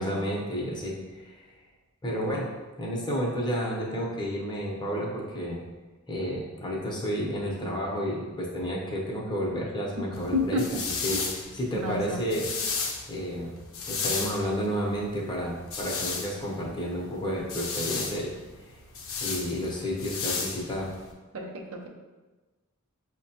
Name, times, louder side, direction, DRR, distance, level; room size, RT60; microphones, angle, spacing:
voice 1, 0.0-1.5 2.0-2.5 2.8-5.6 6.1-12.5 13.1-13.5 13.9-18.3 19.2-20.9, equal, 20° left, -3 dB, 0.7 m, -31 dB
sound 1, 10.1-21.1, left 4 dB, 65° left, 0.6 m, -34 dB
voice 2, 10.3-10.8 11.7-12.2 21.3-21.9, left 1 dB, 70° right, 1 dB, 0.5 m, -30 dB
5.7 x 2.2 x 2.8 m, 1.2 s
head